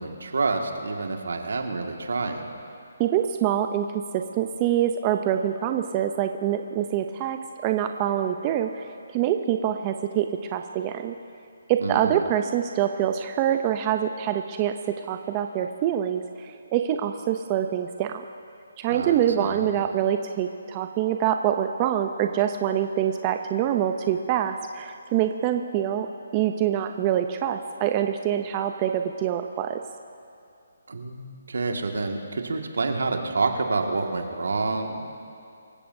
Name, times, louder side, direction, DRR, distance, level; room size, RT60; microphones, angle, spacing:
voice 1, 0.0-2.5 11.8-12.2 18.9-19.6 30.9-35.1, right 3 dB, 80° right, 3 dB, 1.9 m, -28 dB
voice 2, 3.0-3.9 4.1-8.9 9.1-11.1 11.7-14.8 15.0-18.2 18.8-26.1 26.3-29.8, right 10 dB, 25° right, 6 dB, 0.5 m, -25 dB
25.5 x 16.0 x 2.7 m, 2.4 s
hypercardioid pair, 160°, 0 cm